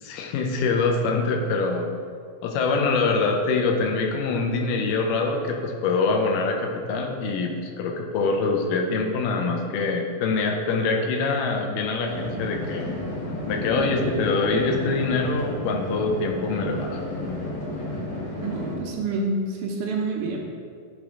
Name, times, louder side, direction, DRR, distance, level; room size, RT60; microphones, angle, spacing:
voice 1, 0.0-1.9 2.4-12.9 13.5-17.2, left 3 dB, 85° left, 2 dB, 2.2 m, -24 dB
sound 1, 12.1-18.7, left 1 dB, 55° left, 1.7 m, -32 dB
voice 2, 18.4-19.3 19.6-20.4, right 4 dB, 75° right, -1 dB, 2.2 m, -27 dB
10.0 x 3.4 x 3.6 m, 2.2 s
omnidirectional pair, 3.9 m